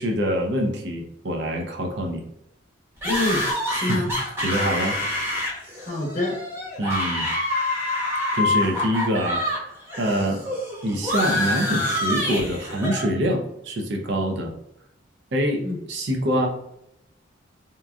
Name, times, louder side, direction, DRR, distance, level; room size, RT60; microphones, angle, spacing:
voice 1, 0.0-2.2 3.7-5.0 6.8-7.3 8.3-10.4 10.8-14.5 15.3-16.5, equal, 60° right, 1 dB, 0.5 m, -25 dB
voice 2, 3.0-4.1 5.8-6.4 15.6-15.8, left 2 dB, 40° left, -3 dB, 0.6 m, -26 dB
sound 1, 3.0-9.6 9.9-13.1, left 1 dB, 10° right, 0.8 m, -26 dB
2.9 x 2.4 x 2.3 m, 0.80 s
head